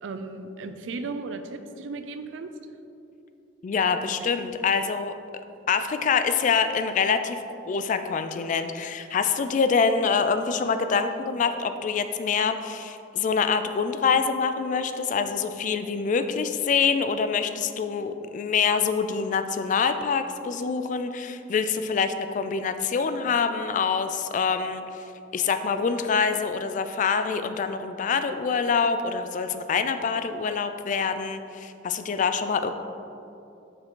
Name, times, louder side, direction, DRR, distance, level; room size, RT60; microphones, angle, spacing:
voice 1, 0.0-2.5 4.4-4.5, right 3 dB, 85° right, 8 dB, 0.4 m, -35 dB
voice 2, 3.6-5.1 5.7-25.0 25.3-32.7, left 5 dB, 45° left, 9 dB, 0.3 m, -25 dB
6.2 x 4.8 x 3.7 m, 2.7 s
head